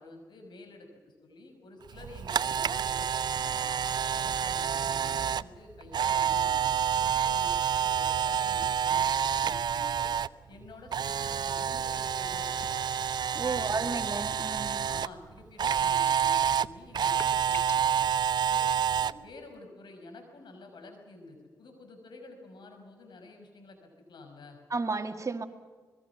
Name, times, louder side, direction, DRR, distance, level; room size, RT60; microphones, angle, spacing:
voice 1, 0.0-3.7 4.1-10.1 10.5-12.8 13.4-14.1 14.8-18.0 18.5-24.6, left 2 dB, 75° left, 5 dB, 5.7 m, -50 dB
Camera, 1.9-10.3 10.6-15.1 15.6-19.1, right 8 dB, 65° right, 0.6 m, -28 dB
voice 2, 13.3-14.8 24.7-25.5, right 3 dB, 45° right, 7 dB, 2.0 m, -32 dB
sound 1, 16.1-16.7 17.0-18.0, left 3 dB, 35° left, 1.2 m, -44 dB
25.0 x 21.0 x 6.0 m, 1.5 s
supercardioid pair, 45°, 8 cm